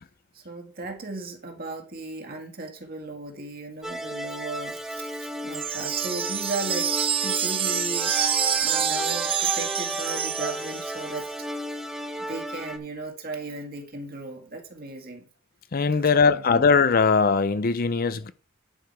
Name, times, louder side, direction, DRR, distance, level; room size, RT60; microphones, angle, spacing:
voice 1, 0.3-6.9 7.2-8.1 8.6-11.5 12.2-15.3 15.9-16.7, right 3 dB, 45° right, 2.1 m, -36 dB
sound 1, 3.8-12.8, equal, 5° right, 1.0 m, -34 dB
sound 2, 5.5-11.0, right 9 dB, 25° right, 0.4 m, -27 dB
voice 2, 15.7-18.3, left 5 dB, 45° left, 0.5 m, -20 dB
10.5 x 5.0 x 4.7 m
head